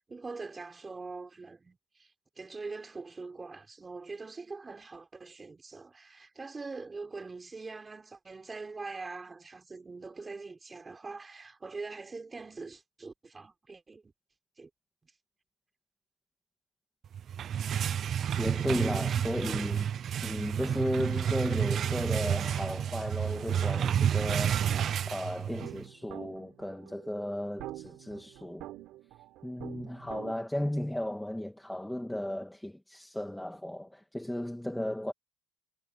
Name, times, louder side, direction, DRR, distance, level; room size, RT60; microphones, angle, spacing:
voice 1, 0.0-2.1 2.4-14.1 14.6-14.7 15.0-15.1, right 3 dB, 15° right, 4.6 m, -43 dB
sound 1, 17.1-25.8, right 9 dB, 40° right, 0.5 m, -30 dB
voice 2, 18.4-28.7 29.4-35.1, left 1 dB, 5° left, 2.0 m, -35 dB
sound 2, 24.3-30.3, right 15 dB, 65° right, 3.8 m, -47 dB
cardioid pair, 145°, 0 cm